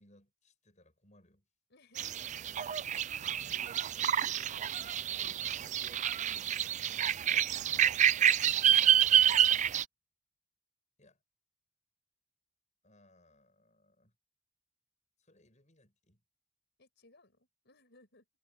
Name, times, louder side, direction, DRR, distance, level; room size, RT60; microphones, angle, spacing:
voice 1, 0.0-1.5 8.1-8.3 11.0-11.2 12.8-14.1 15.2-16.2, left 1 dB, 35° left, 7.8 m, -65 dB
voice 2, 1.7-7.4 7.8-9.7 16.8-18.3, left 2 dB, 55° left, 6.2 m, -65 dB
sound 1, 2.0-9.8, right 10 dB, 35° right, 0.4 m, -28 dB
head